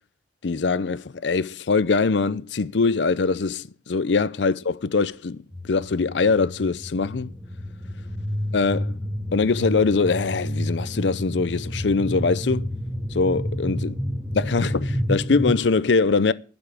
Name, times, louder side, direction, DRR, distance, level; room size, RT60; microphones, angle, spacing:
voice 1, 0.4-7.3 8.5-9.0 9.3-12.7 13.1-13.9 14.3-16.3, left 4 dB, 90° left, 0.6 m, -22 dB
sound 1, 5.5-15.6, equal, 5° right, 1.2 m, -30 dB
12.0 x 7.1 x 8.2 m
head